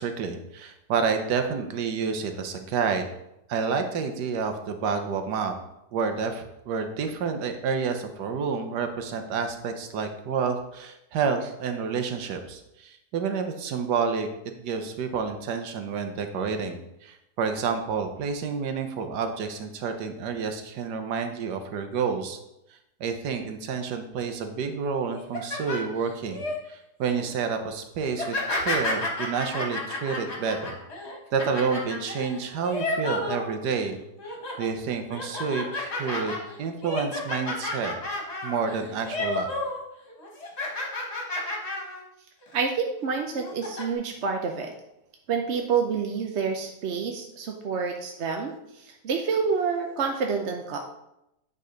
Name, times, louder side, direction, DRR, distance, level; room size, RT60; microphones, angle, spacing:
voice 1, 0.0-3.0 3.5-5.5 5.9-22.4 23.0-30.7 31.3-38.0 38.4-39.5, right 5 dB, 80° right, 6 dB, 1.5 m, -29 dB
sound 1, 25.1-26.5 27.0-27.3 28.1-33.8 34.2-34.7 35.1-39.8 40.1-42.0 42.4-42.6 43.3-43.8, left 2 dB, 40° left, 1.7 m, -31 dB
voice 2, 42.5-44.7 45.3-50.8, right 5 dB, 55° right, 3 dB, 0.8 m, -28 dB
9.0 x 4.1 x 5.0 m, 0.86 s
omnidirectional pair, 1.8 m